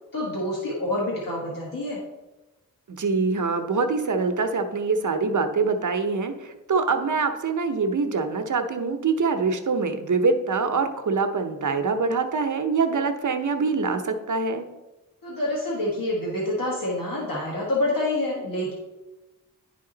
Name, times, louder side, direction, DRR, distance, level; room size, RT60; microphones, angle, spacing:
voice 1, 0.1-2.0 15.2-18.7, left 1 dB, 70° left, -4 dB, 1.4 m, -27 dB
voice 2, 2.9-14.6, right 4 dB, 60° right, 7 dB, 0.8 m, -24 dB
10.5 x 3.6 x 3.8 m, 1.1 s
wide cardioid pair, 60°, 35 cm